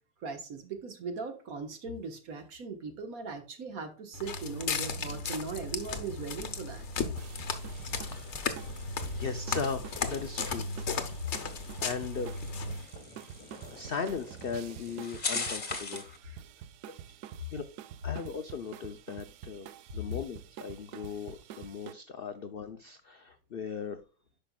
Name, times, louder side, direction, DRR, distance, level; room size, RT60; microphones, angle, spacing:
voice 1, 0.2-6.8 16.2-16.4, right 4 dB, 60° right, 6 dB, 1.6 m, -39 dB
Walk footsteps, 4.1-12.8, left 4 dB, 50° left, 1.0 m, -35 dB
sound 1, 5.5-16.2, left 3 dB, 30° left, 1.1 m, -43 dB
sound 2, 7.2-21.9, right 10 dB, 80° right, 1.1 m, -48 dB
voice 2, 8.0-8.9 9.2-11.1 11.8-12.4 13.7-16.0 17.5-17.6 18.0-24.0, left 5 dB, 75° left, 8 dB, 0.5 m, -38 dB
10.0 x 5.7 x 2.3 m, 0.37 s
omnidirectional pair, 1.8 m